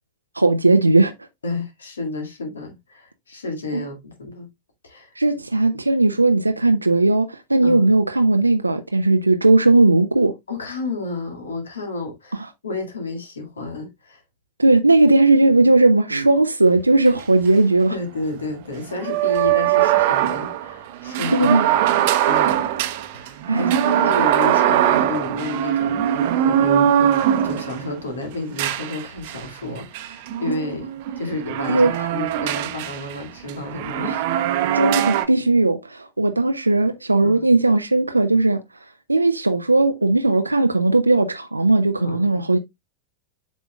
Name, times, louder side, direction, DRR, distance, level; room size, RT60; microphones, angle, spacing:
voice 1, 0.4-1.1 3.7-3.8 5.2-10.3 14.6-17.9 21.3-21.7 23.5-23.7 31.7-31.9 34.7-38.6 39.1-42.6, right 2 dB, 80° right, 0.4 m, -17 dB
voice 2, 1.4-4.5 4.8-5.1 7.6-7.9 10.5-14.2 17.9-22.6 23.1-30.9 31.2-34.3 37.2-37.4 42.0-42.5, left 2 dB, 70° left, 2.0 m, -31 dB
sound 1, 16.8-16.9 17.1-17.2 19.0-27.9 28.6-29.4 29.9-33.1 33.5-35.3, right 11 dB, 50° right, 0.7 m, -21 dB
8.2 x 6.1 x 2.3 m
figure-of-eight pair, 90°, 0 cm